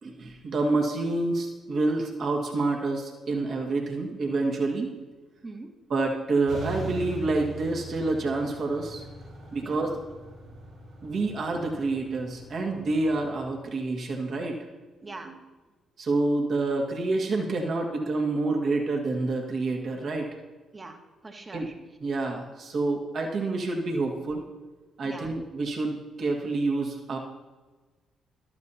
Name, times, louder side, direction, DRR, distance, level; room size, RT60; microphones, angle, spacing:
voice 1, 0.0-4.9 5.9-9.0 9.5-10.0 11.0-14.7 15.0-15.3 16.0-20.4 21.5-21.7 22.0-24.4 25.0-27.2, right 3 dB, 55° right, 1 dB, 1.8 m, -28 dB
sound 1, 6.5-13.5, right 2 dB, 75° right, 3.9 m, -41 dB
voice 2, 15.0-15.3 20.7-21.7 25.0-25.3, right 3 dB, 30° right, 4 dB, 1.5 m, -43 dB
13.0 x 12.0 x 2.8 m, 1.3 s
hypercardioid pair, 45°, 0 cm